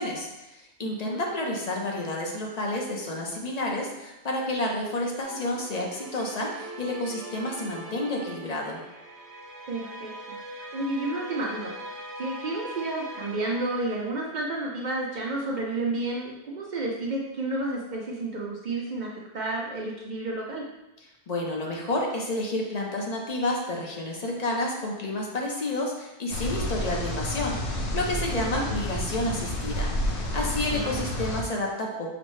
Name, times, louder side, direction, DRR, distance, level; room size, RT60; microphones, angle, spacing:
voice 1, 0.0-8.8 21.3-32.1, left 1 dB, 45° left, -1 dB, 0.6 m, -30 dB
voice 2, 0.8-1.3 9.7-10.4 10.7-11.7 12.2-20.6 28.5-28.7 30.7-31.0, right 2 dB, 55° right, -2 dB, 0.6 m, -31 dB
sound 1, 5.2-15.0, right 1 dB, 75° right, 1.0 m, -42 dB
sound 2, 26.3-31.4, left 1 dB, 75° left, 0.9 m, -30 dB
5.9 x 2.0 x 3.1 m, 0.96 s
omnidirectional pair, 1.2 m